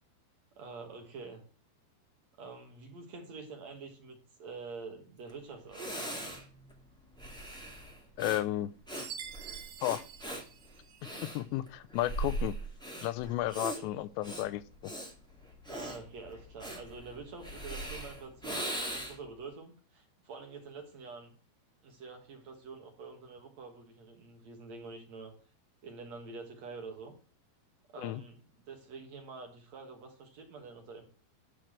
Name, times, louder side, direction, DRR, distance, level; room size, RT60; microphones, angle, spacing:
voice 1, 0.5-1.4 2.4-6.0 13.5-13.8 15.7-21.3 21.8-25.3 25.8-27.2 27.9-31.1, right 4 dB, 55° right, 4 dB, 2.0 m, -47 dB
Breathing, 5.3-5.4 5.7-19.3, right 1 dB, 5° left, 0.4 m, -40 dB
voice 2, 8.2-8.7 9.8-10.0 11.3-12.6 13.0-14.9 28.0-28.2, left 15 dB, 90° left, 13 dB, 2.9 m, -33 dB
Chime, 8.9-11.3, right 8 dB, 90° right, 1.4 m, -47 dB
11.5 x 4.5 x 7.5 m, 0.38 s
omnidirectional pair, 5.0 m